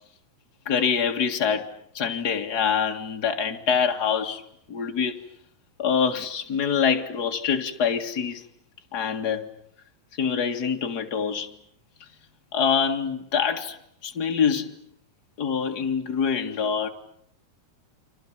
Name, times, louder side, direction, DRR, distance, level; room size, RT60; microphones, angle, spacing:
voice 1, 0.7-1.7 1.9-4.4 4.7-5.2 5.8-8.4 8.9-9.5 10.2-11.5 12.5-13.8 14.0-14.7 15.4-16.9, left 7 dB, 35° left, 1.8 m, -25 dB
29.5 x 26.5 x 7.4 m
omnidirectional pair, 4.5 m